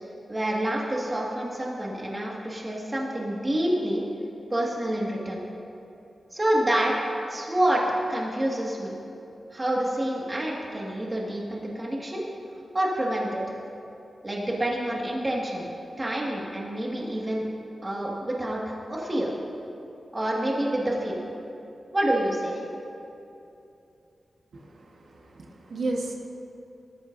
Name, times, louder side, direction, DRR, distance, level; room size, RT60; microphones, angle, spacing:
voice 1, 0.3-4.0 4.5-5.4 6.3-6.9 7.3-7.8 8.1-8.9 9.5-12.2 12.7-13.4 14.2-15.7 16.0-17.5 17.8-19.3 20.1-21.2 21.9-22.6, right 1 dB, 25° right, -3 dB, 1.8 m, -27 dB
voice 2, 24.5-26.1, right 2 dB, 80° right, 0 dB, 1.3 m, -33 dB
19.0 x 13.0 x 2.6 m, 2.7 s
wide cardioid pair, 115°, 0 cm